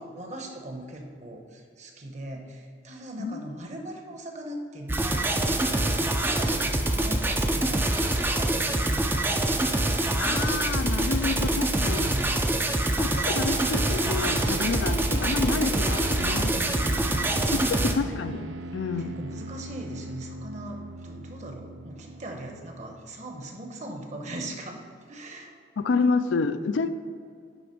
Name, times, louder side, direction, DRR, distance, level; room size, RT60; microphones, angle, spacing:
voice 1, 0.0-10.2 10.8-13.5 14.3-15.9 16.4-18.4 19.0-24.8 25.1-25.6 26.8-26.9, right 1 dB, 35° right, 0.9 m, -40 dB
sound 1, 4.9-17.9, right 1 dB, 10° right, 0.4 m, -25 dB
voice 2, 10.2-12.2 13.0-16.5 17.5-17.6 18.0-18.4 18.7-19.1 25.8-26.9, left 4 dB, 75° left, 0.4 m, -28 dB
sound 2, 13.5-23.1, right 2 dB, 75° right, 0.5 m, -39 dB
10.0 x 3.4 x 5.2 m
head